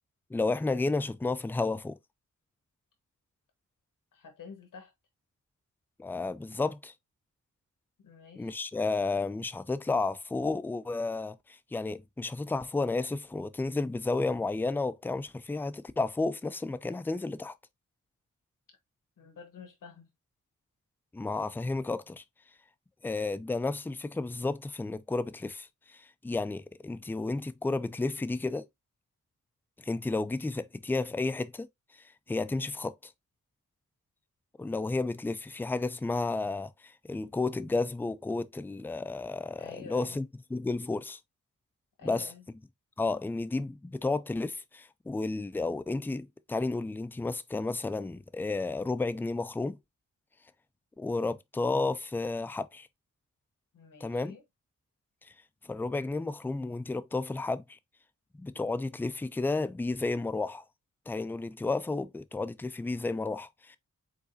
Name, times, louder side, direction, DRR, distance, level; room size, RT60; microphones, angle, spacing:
voice 1, 0.3-2.0 6.0-6.9 8.4-17.5 21.1-22.2 23.0-28.7 29.8-31.7 32.3-33.1 34.6-40.2 40.5-41.2 42.0-42.3 43.0-49.8 51.0-52.9 54.0-54.3 55.6-57.8 58.4-60.6 61.1-63.8, left 3 dB, 5° left, 0.3 m, -32 dB
voice 2, 4.1-4.9 8.0-8.6 19.2-20.1 39.6-40.2 42.0-42.4 53.7-54.4, left 6 dB, 75° left, 1.3 m, -49 dB
4.8 x 4.0 x 2.6 m
wide cardioid pair, 115°, 32 cm